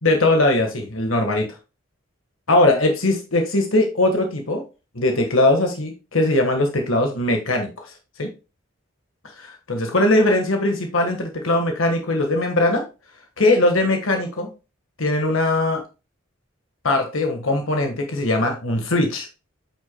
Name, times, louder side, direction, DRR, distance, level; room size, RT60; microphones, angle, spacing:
voice 1, 0.0-1.5 2.5-4.6 4.9-7.7 8.2-8.3 9.4-12.8 13.4-14.5 15.0-15.8 16.8-19.3, left 2 dB, 80° left, 4 dB, 1.5 m, -20 dB
9.1 x 6.1 x 2.2 m, 0.30 s
head